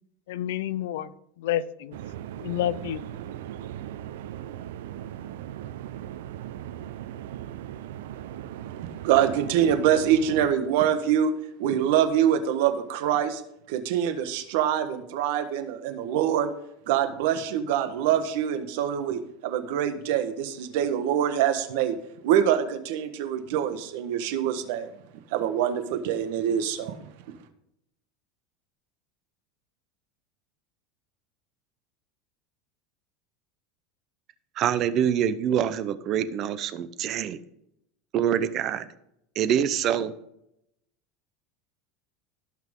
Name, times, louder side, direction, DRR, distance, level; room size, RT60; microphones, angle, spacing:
voice 1, 0.3-2.0 2.4-3.0, left 12 dB, 85° left, 18 dB, 0.6 m, -29 dB
sound 1, 1.9-10.5, right 11 dB, 90° right, 0.6 m, -38 dB
voice 2, 9.0-11.3 11.6-13.4 13.7-16.5 16.9-21.9 22.2-24.9 25.3-27.0, right 9 dB, 70° right, 9 dB, 1.3 m, -25 dB
voice 3, 34.6-37.4 38.1-38.9 39.4-40.1, right 9 dB, 40° right, 14 dB, 0.7 m, -25 dB
17.5 x 6.0 x 3.7 m, 0.79 s
supercardioid pair, 145°, 0 cm